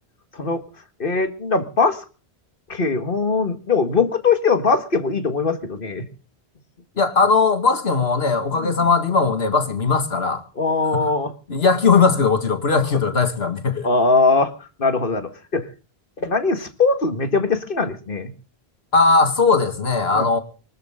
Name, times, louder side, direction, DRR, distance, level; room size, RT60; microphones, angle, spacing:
voice 1, 1.0-2.0 2.7-6.1 8.6-8.9 10.6-11.3 13.8-14.5 14.8-15.7 16.2-18.3 20.1-20.3, left 4 dB, 55° left, 2.0 m, -21 dB
voice 2, 7.0-10.4 10.9-11.1 11.5-13.9 18.9-20.4, left 4 dB, 75° left, 2.4 m, -19 dB
24.5 x 13.5 x 3.8 m
omnidirectional pair, 1.1 m